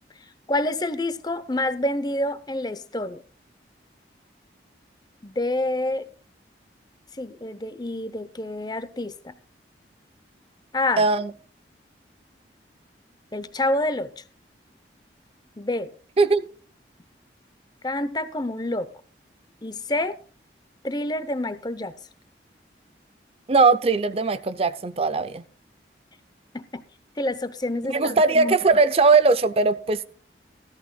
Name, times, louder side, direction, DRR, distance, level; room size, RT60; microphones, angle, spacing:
voice 1, 0.5-3.2 5.2-6.1 7.2-9.3 10.7-11.0 13.3-14.2 15.6-15.9 17.8-18.9 19.6-20.2 20.8-21.9 26.5-26.8 27.2-28.6, left 1 dB, 25° left, 0.6 m, -27 dB
voice 2, 11.0-11.3 16.2-16.4 23.5-25.4 27.9-30.0, right 4 dB, 35° right, 0.4 m, -19 dB
16.5 x 13.5 x 2.2 m
head